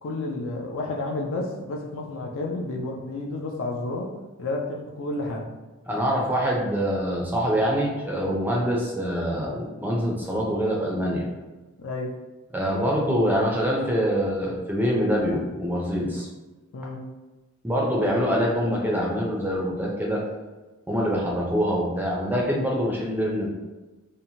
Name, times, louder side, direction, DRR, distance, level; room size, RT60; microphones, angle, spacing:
voice 1, 0.0-4.1 4.4-5.5 11.8-12.2 16.7-17.0, left 2 dB, 60° left, 1 dB, 0.4 m, -31 dB
voice 2, 5.9-11.3 12.5-16.3 17.6-20.2 20.9-23.5, equal, 10° right, -3 dB, 0.4 m, -25 dB
2.8 x 2.1 x 2.7 m, 1.2 s
head